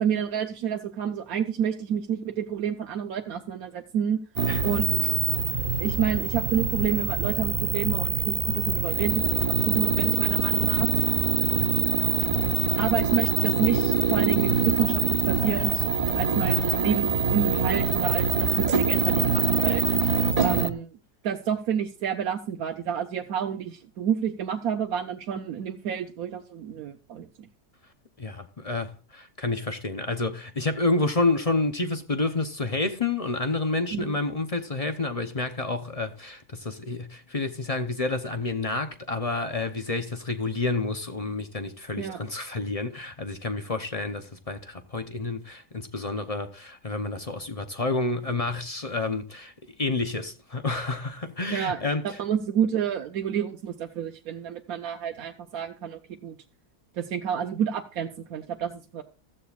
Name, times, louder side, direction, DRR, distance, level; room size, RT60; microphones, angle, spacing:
voice 1, 0.0-4.2 4.6-5.1 5.8-10.9 12.8-15.8 16.1-19.8 20.4-20.9 21.2-27.5 33.9-34.1 42.0-42.2 51.5-51.8 52.0-56.4 56.9-59.0, right 8 dB, 70° right, 1.2 m, -29 dB
sound 1, 4.4-20.7, right 6 dB, 40° right, 0.6 m, -24 dB
voice 2, 28.2-49.5 49.8-52.2, left 3 dB, 35° left, 0.6 m, -29 dB
15.0 x 13.5 x 2.4 m
omnidirectional pair, 1.6 m